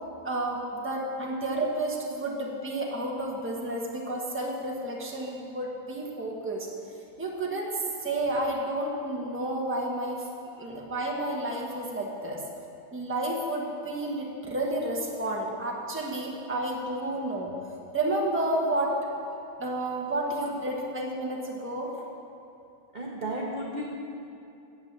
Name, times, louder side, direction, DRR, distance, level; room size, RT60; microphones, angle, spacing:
voice 1, 0.2-6.7 7.2-10.3 10.6-12.4 12.9-17.5 17.9-18.9 19.6-21.9, right 1 dB, 10° right, -1 dB, 1.0 m, -31 dB
voice 2, 22.9-23.8, right 1 dB, 35° right, -3 dB, 0.8 m, -33 dB
9.5 x 8.0 x 7.3 m, 2.7 s
omnidirectional pair, 2.1 m